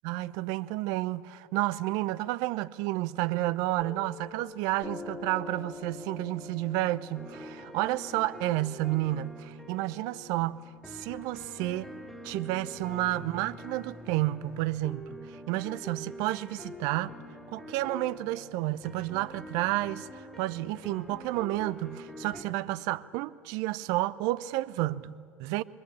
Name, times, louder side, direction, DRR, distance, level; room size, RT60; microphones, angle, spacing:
voice 1, 0.0-10.6 10.9-11.9 12.2-17.2 17.5-25.6, right 17 dB, 60° right, 0.6 m, -31 dB
Piano, 3.8-10.9, left 3 dB, 25° left, 1.3 m, -46 dB
sound 1, 7.1-22.4, left 1 dB, 5° left, 3.2 m, -45 dB
21.5 x 20.0 x 8.7 m
figure-of-eight pair, 70°, 7 cm